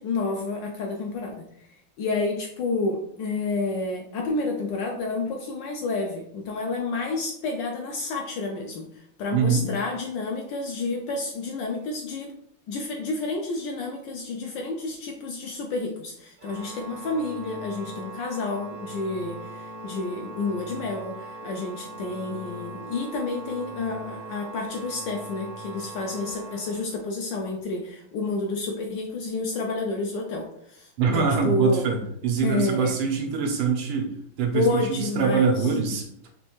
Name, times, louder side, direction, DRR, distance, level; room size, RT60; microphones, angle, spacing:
voice 1, 0.0-1.4 2.0-8.9 9.2-12.3 12.7-31.9 32.4-33.0 34.5-35.7, left 3 dB, 75° left, 1 dB, 1.0 m, -30 dB
voice 2, 9.3-9.7 31.0-34.1 34.4-36.1, right 5 dB, 90° right, 1 dB, 1.8 m, -24 dB
Organ, 16.4-27.3, right 3 dB, 65° right, 0.9 m, -40 dB
4.3 x 3.1 x 3.0 m, 0.72 s
omnidirectional pair, 2.4 m